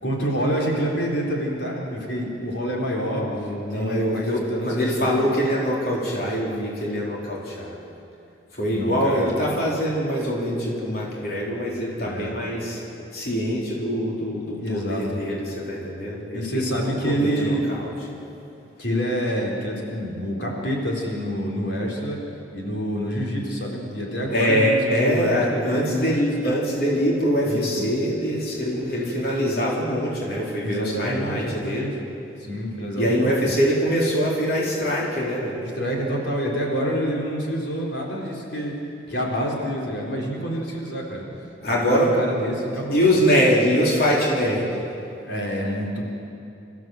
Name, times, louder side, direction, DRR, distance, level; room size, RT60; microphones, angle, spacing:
voice 1, 0.0-3.3 3.7-5.2 8.6-9.3 12.0-12.4 14.6-15.2 16.3-17.7 18.8-22.2 22.5-26.6 27.4-27.9 30.6-31.9 32.4-33.5 35.6-38.8 39.1-41.2 41.7-43.0 45.2-46.0, equal, 80° left, -2 dB, 4.0 m, -27 dB
voice 2, 3.1-7.8 8.5-12.8 13.1-17.9 24.3-31.9 33.0-35.6 41.6-42.1 42.9-44.7, equal, 55° left, -4 dB, 3.8 m, -23 dB
26.5 x 15.0 x 7.8 m, 2.7 s
head